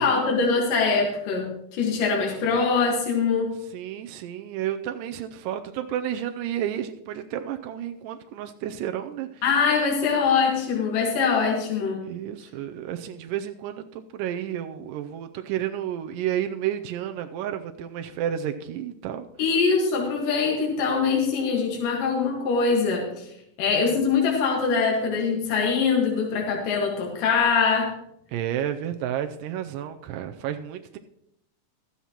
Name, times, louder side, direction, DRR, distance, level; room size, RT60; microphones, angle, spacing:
voice 1, 0.0-3.5 9.4-12.0 19.4-23.3 23.6-27.9, left 5 dB, 80° left, -1 dB, 3.3 m, -23 dB
voice 2, 3.7-9.4 12.0-19.3 28.3-31.0, right 10 dB, 90° right, 6 dB, 2.2 m, -31 dB
15.5 x 12.5 x 2.9 m, 0.77 s
omnidirectional pair, 3.7 m